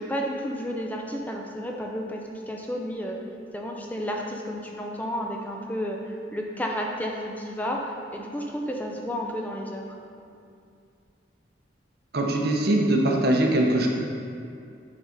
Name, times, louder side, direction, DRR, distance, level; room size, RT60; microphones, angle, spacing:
voice 1, 0.0-3.2 3.5-10.0, equal, 10° left, 0 dB, 0.5 m, -32 dB
voice 2, 12.1-13.9, right 1 dB, 55° right, 1 dB, 0.8 m, -22 dB
7.7 x 4.1 x 5.1 m, 2.4 s
head